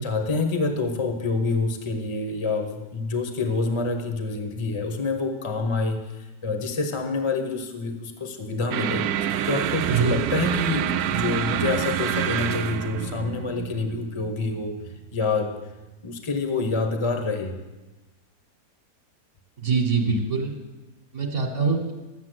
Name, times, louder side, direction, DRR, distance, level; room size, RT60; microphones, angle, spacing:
voice 1, 0.0-14.8 15.1-15.5 16.0-17.5, left 3 dB, 20° left, 6 dB, 0.9 m, -27 dB
sound 1, 8.7-15.2, right 10 dB, 70° right, 0.9 m, -27 dB
voice 2, 19.6-20.5 21.1-21.9, right 4 dB, 45° right, 1 dB, 1.6 m, -23 dB
12.5 x 7.2 x 7.9 m, 1.1 s
omnidirectional pair, 1.9 m